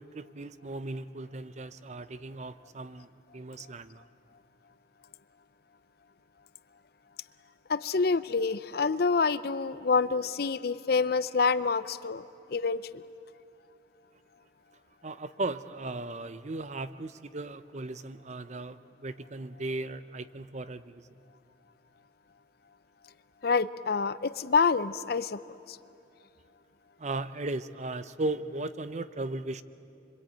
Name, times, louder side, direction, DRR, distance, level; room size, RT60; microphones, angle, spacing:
voice 1, 0.0-4.0 15.0-21.1 27.0-29.6, right 2 dB, 40° right, 13 dB, 0.7 m, -37 dB
voice 2, 7.7-12.2 12.5-13.0 23.4-25.4 25.7-25.8, left 4 dB, 55° left, 15 dB, 0.6 m, -27 dB
26.0 x 24.5 x 9.1 m, 2.6 s
head